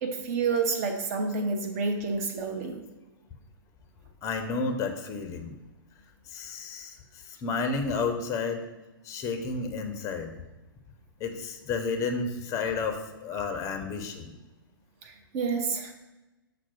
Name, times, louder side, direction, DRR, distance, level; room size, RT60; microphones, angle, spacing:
voice 1, 0.0-2.8 15.0-15.9, right 4 dB, 40° right, 4 dB, 0.7 m, -29 dB
voice 2, 4.2-5.6 6.3-8.7 9.0-10.4 11.2-14.3, left 4 dB, 25° left, 6 dB, 0.5 m, -31 dB
5.8 x 2.0 x 4.3 m, 1.0 s
figure-of-eight pair, 110°, 12 cm